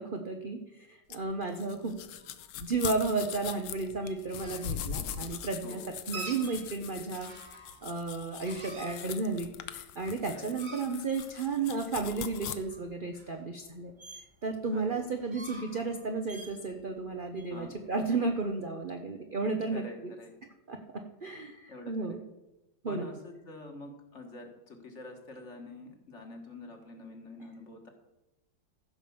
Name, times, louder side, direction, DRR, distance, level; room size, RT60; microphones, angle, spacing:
voice 1, 0.0-2.0 2.6-5.8 6.1-13.9 14.4-20.1 20.7-20.8 21.2-22.2 22.8-23.1, right 3 dB, 55° right, 4 dB, 0.5 m, -33 dB
sound 1, 1.1-12.6, left 9 dB, 80° left, 1.4 m, -41 dB
sound 2, 3.6-18.5, right 3 dB, 25° right, 1.3 m, -48 dB
voice 2, 5.6-5.9 10.3-10.6 14.7-15.1 17.5-17.7 19.7-20.3 21.7-22.2 22.9-27.9, left 2 dB, 40° left, 4 dB, 1.6 m, -46 dB
14.5 x 5.2 x 7.0 m, 0.99 s
omnidirectional pair, 2.1 m